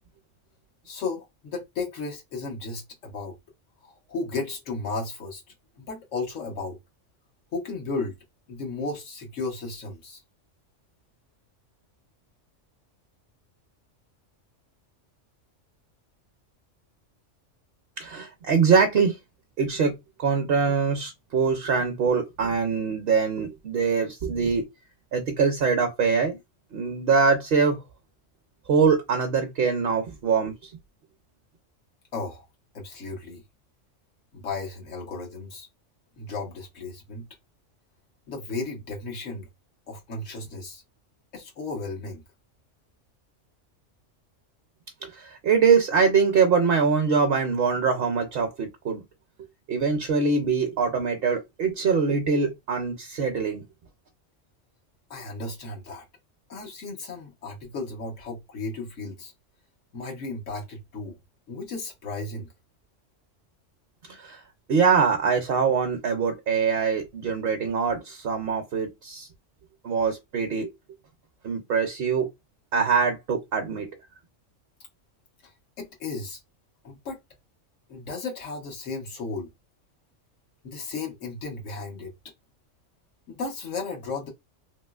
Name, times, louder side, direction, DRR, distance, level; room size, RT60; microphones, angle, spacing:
voice 1, 0.8-3.4 3.8-5.4 5.8-6.8 7.5-8.1 8.5-10.2 32.1-32.5 32.7-33.4 34.3-35.7 36.2-37.3 38.3-39.5 39.9-40.8 41.3-42.2 55.1-56.0 56.5-59.3 59.9-61.2 61.5-62.5 75.4-76.4 76.8-77.2 77.9-79.5 80.6-82.1 83.3-84.3, left 3 dB, 85° left, 1.3 m, -34 dB
voice 2, 18.0-19.2 19.6-19.9 20.2-24.6 25.1-26.4 26.7-27.8 28.7-30.7 45.0-49.0 49.7-53.6 64.1-64.4 64.7-69.3 69.8-70.7 71.4-72.3 72.7-73.9, right 5 dB, 60° right, 0.7 m, -23 dB
3.0 x 2.9 x 2.3 m
omnidirectional pair, 1.3 m